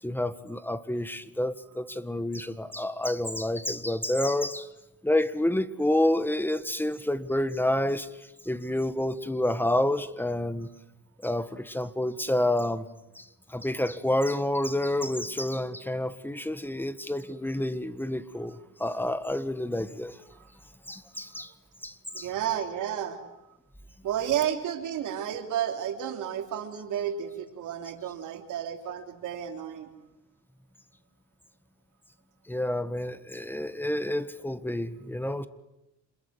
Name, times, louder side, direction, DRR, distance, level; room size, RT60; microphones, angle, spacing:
voice 1, 0.0-4.7 5.0-8.1 8.4-10.7 11.2-12.9 13.1-20.2 20.9-21.5 21.8-22.3 32.5-35.5, left 1 dB, 5° left, 1.7 m, -29 dB
voice 2, 13.7-14.2 16.3-16.4 20.4-20.5 21.3-21.5 22.1-23.2 24.0-29.9, right 10 dB, 85° right, 3.4 m, -32 dB
27.5 x 21.5 x 9.5 m
cardioid pair, 90°, 30 cm